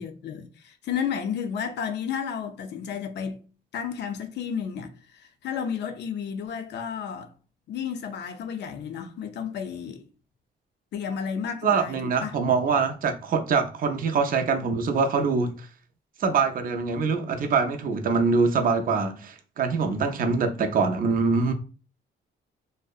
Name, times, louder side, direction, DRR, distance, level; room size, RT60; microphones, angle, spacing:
voice 1, 0.0-3.4 3.7-7.3 7.7-10.0 10.9-12.4, left 7 dB, 60° left, 0.5 m, -32 dB
voice 2, 11.6-15.7 16.2-21.5, right 5 dB, 45° right, 0.4 m, -24 dB
2.6 x 2.0 x 2.3 m
cardioid pair, 90°, 20 cm